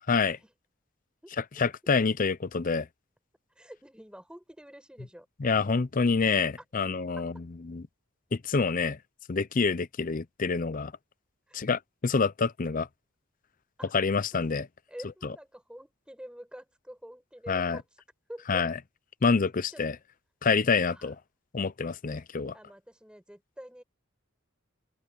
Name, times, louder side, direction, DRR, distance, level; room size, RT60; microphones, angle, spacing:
voice 1, 0.1-0.4 1.6-2.9 5.4-7.3 7.7-7.8 8.3-9.0 9.3-10.9 11.5-12.9 13.9-14.7 17.5-17.8 18.5-18.7 19.2-19.9 20.4-21.2 21.5-22.5, left 4 dB, 40° left, 0.6 m, -27 dB
voice 2, 3.5-5.3 7.1-7.3 11.5-11.6 13.8-13.9 14.9-18.0 18.3-18.6 19.7-19.8 20.9-21.1 22.5-23.8, equal, 5° right, 5.0 m, -47 dB
open air
head